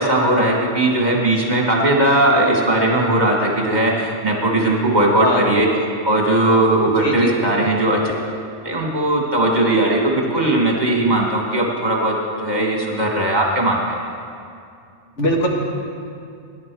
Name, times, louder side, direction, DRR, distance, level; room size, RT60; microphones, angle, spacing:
voice 1, 0.0-5.7 6.0-8.0 8.6-14.0, right 1 dB, 35° right, -1 dB, 1.8 m, -18 dB
voice 2, 7.0-7.3 15.2-15.5, equal, 75° left, 0 dB, 2.1 m, -20 dB
21.0 x 10.5 x 4.7 m, 2.4 s
omnidirectional pair, 1.2 m